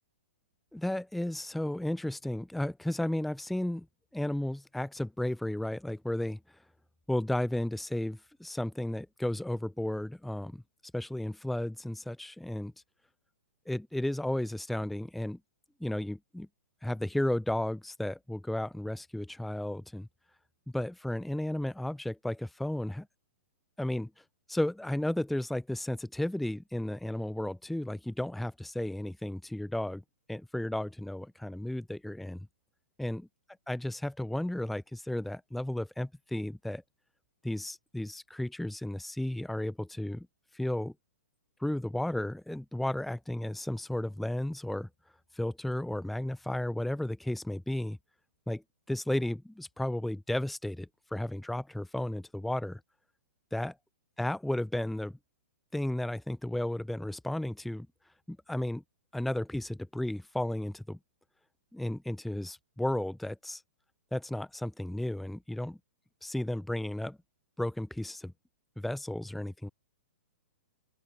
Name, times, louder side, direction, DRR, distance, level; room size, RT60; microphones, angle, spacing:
voice 1, 0.7-3.9 4.1-6.6 7.1-10.6 10.9-12.7 13.7-15.4 15.8-16.5 16.8-20.1 20.7-23.1 23.8-30.0 30.3-32.4 33.0-33.3 33.7-36.8 37.4-40.3 40.5-40.9 41.6-44.9 45.3-48.0 48.5-52.8 53.5-53.8 54.2-55.2 55.7-57.9 58.3-58.8 59.1-61.0 61.7-63.6 64.1-65.8 66.2-67.2 67.6-68.3 68.8-69.7, left 1 dB, ahead, 0.6 m, -33 dB
open air
figure-of-eight pair, 110°, 7 cm